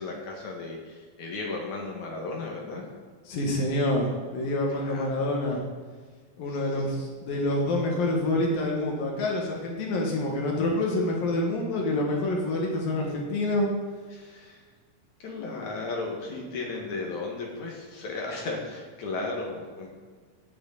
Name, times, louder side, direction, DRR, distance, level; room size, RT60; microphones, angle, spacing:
voice 1, 0.0-2.9 4.7-5.1 6.5-6.6 14.1-14.6 15.2-19.9, left 3 dB, 60° left, 0 dB, 3.0 m, -35 dB
voice 2, 3.3-5.7 6.4-13.7, left 1 dB, 80° left, 0 dB, 3.4 m, -27 dB
17.5 x 8.4 x 4.1 m, 1.5 s
omnidirectional pair, 4.0 m